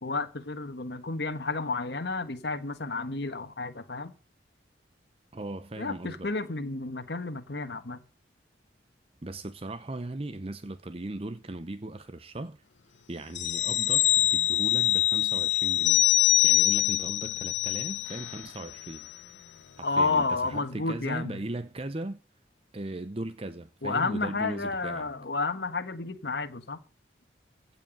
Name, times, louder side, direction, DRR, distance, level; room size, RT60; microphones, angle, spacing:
voice 1, 0.0-4.1 5.8-8.0 19.8-21.3 23.8-26.8, left 3 dB, 65° left, 1.4 m, -31 dB
voice 2, 5.3-6.3 9.2-12.6 13.1-16.0 16.4-19.1 19.8-22.2 22.7-25.1, right 2 dB, 30° right, 0.7 m, -38 dB
sound 1, 13.3-18.5 18.8-18.9, left 16 dB, 80° left, 0.8 m, -24 dB
16.0 x 5.8 x 8.9 m
head